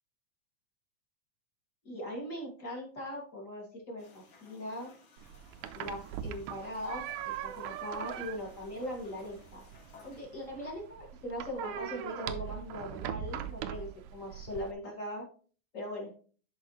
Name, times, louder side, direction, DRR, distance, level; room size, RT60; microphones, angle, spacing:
voice 1, 1.9-4.9 5.7-7.1 7.4-9.6 10.0-15.2 15.7-16.2, equal, 30° left, -2 dB, 1.8 m, -40 dB
sound 1, 4.0-10.6, left 4 dB, 50° left, 1.9 m, -59 dB
sound 2, 5.2-14.7, right 10 dB, 85° right, 2.0 m, -41 dB
12.0 x 4.7 x 3.1 m, 0.42 s
omnidirectional pair, 3.6 m